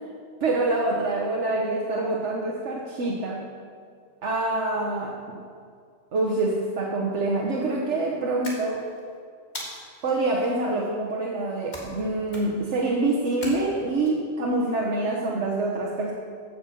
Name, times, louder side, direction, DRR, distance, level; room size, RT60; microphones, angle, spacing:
voice 1, 0.4-3.5 4.2-5.4 6.1-8.8 10.0-16.1, right 2 dB, 80° right, -2 dB, 1.4 m, -26 dB
sound 1, 8.4-9.0 9.5-10.1 11.7-12.0 12.3-12.7 13.4-14.1, left 1 dB, 40° left, 2.1 m, -39 dB
15.0 x 6.6 x 5.5 m, 2.1 s
omnidirectional pair, 1.2 m